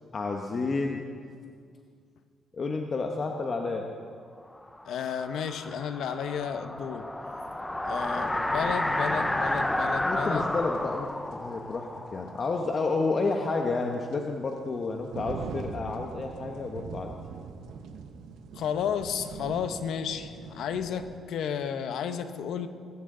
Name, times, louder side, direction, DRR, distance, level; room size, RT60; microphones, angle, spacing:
voice 1, 0.1-1.0 2.5-3.9 10.0-17.1, left 3 dB, 40° left, 2 dB, 1.1 m, -30 dB
sound 1, 4.7-13.4, left 1 dB, 10° left, 0.8 m, -31 dB
voice 2, 4.9-7.1 7.8-10.5 18.6-22.7, left 7 dB, 75° left, 9 dB, 1.0 m, -32 dB
sound 2, 8.2-8.3 10.8-10.9 11.3-11.4 13.0-21.2, right 6 dB, 85° right, 1.0 m, -42 dB
21.0 x 14.0 x 3.9 m, 2.2 s
cardioid pair, 90°, 0 cm